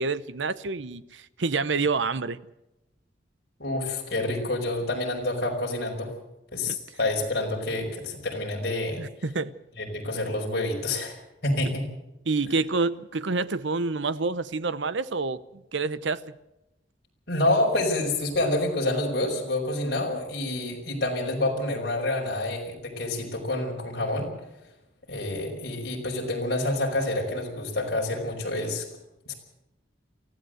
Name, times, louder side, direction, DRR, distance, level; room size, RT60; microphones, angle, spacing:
voice 1, 0.0-2.4 6.7-6.8 9.0-9.5 12.3-16.2, right 4 dB, 75° right, 16 dB, 0.8 m, -28 dB
voice 2, 3.6-6.1 6.5-9.0 9.8-11.2 11.4-11.8 17.3-24.3 25.1-28.9 29.3-29.4, left 2 dB, 55° left, -1 dB, 5.3 m, -28 dB
24.0 x 15.0 x 7.9 m, 0.91 s
head